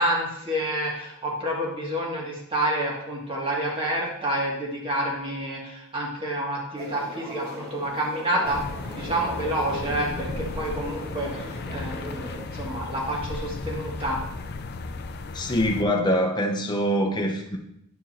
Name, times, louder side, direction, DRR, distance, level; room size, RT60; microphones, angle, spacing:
voice 1, 0.0-14.2, right 1 dB, 25° right, -3 dB, 1.9 m, -28 dB
sound 1, 6.7-12.5, equal, 45° right, 1.5 m, -39 dB
sound 2, 8.4-15.8, left 3 dB, 45° left, 0.5 m, -35 dB
voice 2, 15.3-17.6, equal, 20° left, 1 dB, 0.9 m, -24 dB
10.5 x 4.5 x 4.2 m, 0.79 s
head